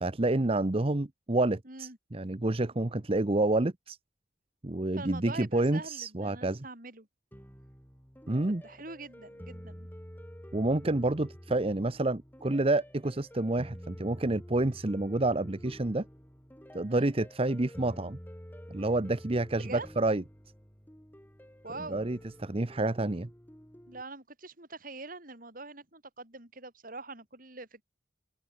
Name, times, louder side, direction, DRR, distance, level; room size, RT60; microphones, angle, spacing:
voice 1, 0.0-4.0 4.6-6.6 8.3-8.6 10.5-16.0 16.7-18.2 18.7-20.2 21.9-23.3, right 2 dB, 35° right, 0.9 m, -29 dB
voice 2, 1.6-2.0 4.9-7.1 8.5-9.9 16.9-17.1 19.6-19.9 21.6-22.1 23.9-27.8, right 3 dB, 50° right, 7.3 m, -44 dB
sound 1, 7.3-24.0, equal, 10° left, 4.6 m, -49 dB
open air
head